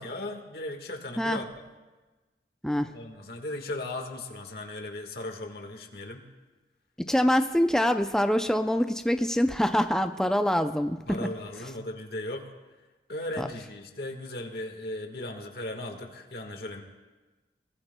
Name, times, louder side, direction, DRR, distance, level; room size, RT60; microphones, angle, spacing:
voice 1, 0.0-1.5 2.9-6.2 11.1-12.5 13.1-16.8, left 1 dB, 60° left, 4 dB, 1.6 m, -37 dB
voice 2, 7.1-11.3 13.4-13.5, equal, 5° left, 7 dB, 0.4 m, -25 dB
23.5 x 19.5 x 2.2 m, 1.2 s
head